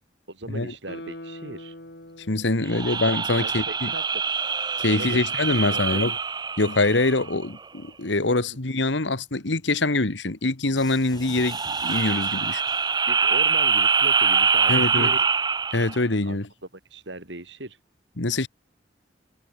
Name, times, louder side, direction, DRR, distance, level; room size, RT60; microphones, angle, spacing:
voice 1, 0.3-1.7 2.9-3.0 3.4-4.0 4.9-5.2 5.5-6.0 8.5-8.6 13.1-15.3 16.3-16.4 16.9-17.8, right 2 dB, 75° right, 4.4 m, -38 dB
Guitar, 0.8-4.1 4.5-4.6, left 1 dB, 60° left, 7.3 m, -43 dB
voice 2, 2.3-3.9 4.8-6.1 6.6-12.6 14.7-15.1 15.7-16.5 18.2-18.5, left 2 dB, 80° left, 1.8 m, -24 dB
sound 1, 2.7-7.4 11.3-16.0, right 5 dB, 20° right, 0.8 m, -24 dB
sound 2, 10.7-13.2, left 4 dB, 20° left, 2.5 m, -46 dB
head